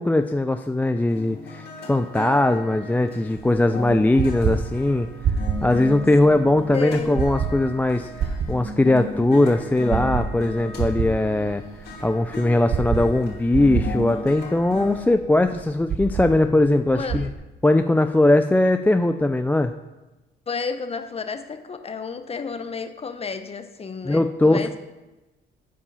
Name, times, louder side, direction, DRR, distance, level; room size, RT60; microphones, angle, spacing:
voice 1, 0.0-5.1 5.6-11.6 12.0-17.3 17.6-19.7 24.0-24.8, left 2 dB, 10° left, 7 dB, 0.3 m, -20 dB
sound 1, 1.1-15.0, left 1 dB, 55° left, 2.7 m, -36 dB
sound 2, 3.4-17.3, right 6 dB, 55° right, 0.8 m, -29 dB
voice 2, 6.7-7.2 16.9-17.3 20.5-24.8, left 5 dB, 30° left, 9 dB, 0.7 m, -31 dB
8.5 x 4.8 x 5.5 m, 1.1 s
cardioid pair, 90°, 20 cm